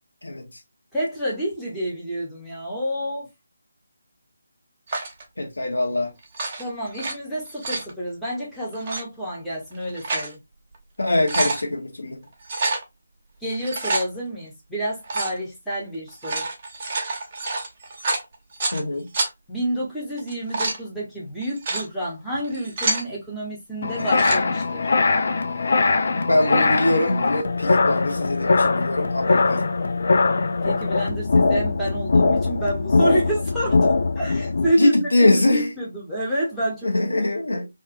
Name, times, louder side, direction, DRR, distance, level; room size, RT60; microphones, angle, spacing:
voice 1, 0.9-3.3 6.6-10.4 13.4-16.5 19.5-24.8 30.6-33.8 34.2-37.0, right 1 dB, 5° left, 0.9 m, -28 dB
sound 1, 4.9-5.2 6.2-7.1 7.5-7.9 8.7-9.0 9.7-10.3 10.7-10.8 11.1-11.6 12.4-12.8 13.5-14.1 15.0-15.4 16.1-18.8 19.1-19.3 20.2-20.8 21.4-21.9 22.4-23.1 23.9-24.4, right 3 dB, 30° right, 0.7 m, -27 dB
voice 2, 5.4-6.1 11.0-12.2 18.7-19.1 26.2-29.6 34.8-35.7 36.8-37.7, left 2 dB, 70° left, 1.0 m, -22 dB
sound 2, 23.8-34.7, left 3 dB, 50° left, 0.3 m, -21 dB
2.5 x 2.5 x 2.5 m
figure-of-eight pair, 150°, 0 cm